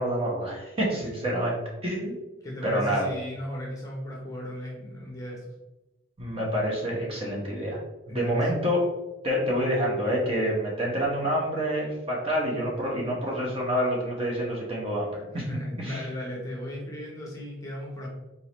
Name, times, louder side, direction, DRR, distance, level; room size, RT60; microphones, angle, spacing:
voice 1, 0.0-2.2 2.6-3.1 6.2-7.8 8.1-8.8 9.2-15.5 15.8-16.1, equal, 30° right, -4 dB, 1.1 m, -27 dB
voice 2, 2.4-5.4 8.1-8.5 15.2-18.1, left 1 dB, 15° left, -3 dB, 0.8 m, -36 dB
3.9 x 3.8 x 3.0 m, 1.0 s
head